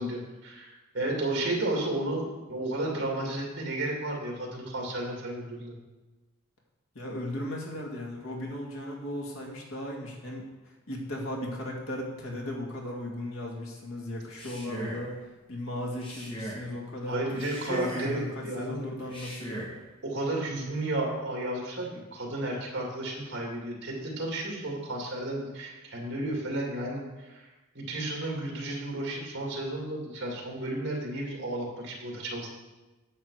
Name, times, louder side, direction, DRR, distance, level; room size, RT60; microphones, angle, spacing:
voice 1, 0.0-5.7 17.1-18.9 20.0-27.5 27.7-32.5, right 1 dB, 55° right, -1 dB, 2.6 m, -33 dB
voice 2, 7.0-10.5 10.9-15.2 15.5-17.2 17.6-19.7, left 1 dB, 75° left, -1 dB, 2.1 m, -36 dB
Male speech man speaking, 14.2-15.1 15.9-16.7 17.3-18.3 19.0-19.8, right 1 dB, 25° left, 1.8 m, -38 dB
9.9 x 7.4 x 4.8 m, 1.1 s
head